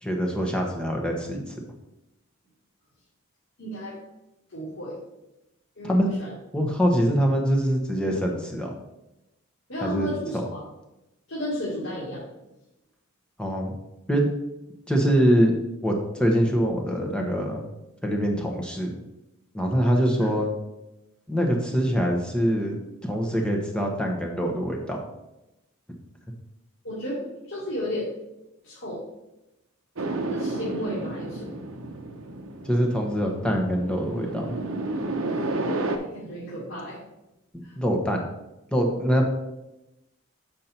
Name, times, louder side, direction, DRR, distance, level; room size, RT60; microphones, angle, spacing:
voice 1, 0.0-1.4 5.8-6.1 6.5-8.7 9.8-10.1 13.4-13.7 14.1-14.3 14.9-15.5 15.8-17.6 18.0-18.9 19.5-20.5 21.3-25.0 32.6-34.5 37.8-38.2 38.7-39.3, equal, 5° left, 0 dB, 1.1 m, -24 dB
voice 2, 3.6-3.9 4.5-5.0 5.8-6.3 9.7-10.6 11.3-12.2 20.2-20.3 26.8-28.1 28.6-29.0 30.3-31.5 35.2-37.0 37.6-37.8, equal, 60° left, -8 dB, 2.0 m, -33 dB
sound 1, 30.0-36.0, right 2 dB, 75° right, 0.9 m, -31 dB
7.4 x 5.3 x 4.4 m, 0.93 s
head